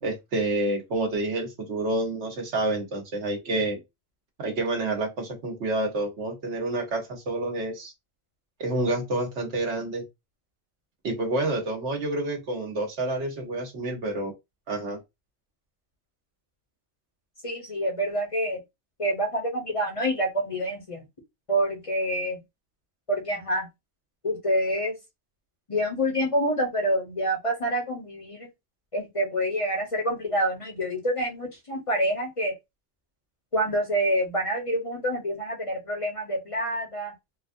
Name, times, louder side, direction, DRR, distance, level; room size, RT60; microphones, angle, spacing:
voice 1, 0.0-3.8 4.4-7.9 8.6-10.1 11.0-14.3 14.7-15.0, right 2 dB, 60° right, 1.3 m, -28 dB
voice 2, 17.4-18.6 19.0-21.0 21.5-22.4 23.1-23.7 24.2-25.0 25.7-28.5 28.9-32.5 33.5-37.1, equal, 30° left, 0.8 m, -27 dB
3.9 x 2.3 x 2.6 m
omnidirectional pair, 1.4 m